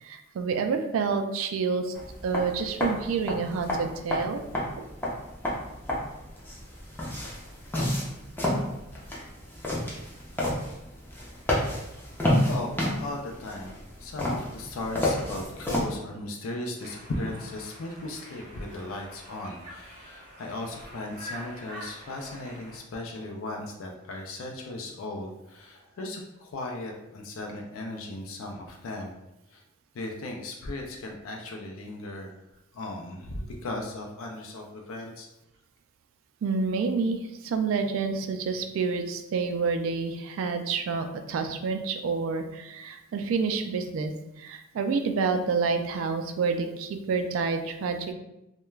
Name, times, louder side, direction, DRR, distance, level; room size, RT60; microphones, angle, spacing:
voice 1, 0.0-1.9 2.2-4.4 4.8-4.9 36.4-44.1 44.4-48.1, right 5 dB, 75° right, 6 dB, 0.3 m, -28 dB
sound 1, 1.9-15.9, left 1 dB, 10° left, 0.4 m, -30 dB
voice 2, 12.4-29.1 29.5-29.6 29.9-32.4 32.7-35.3, left 2 dB, 75° left, 1 dB, 0.4 m, -37 dB
Conversation, 16.8-22.8, right 1 dB, 35° right, 0.6 m, -46 dB
2.2 x 2.1 x 3.1 m, 0.90 s
head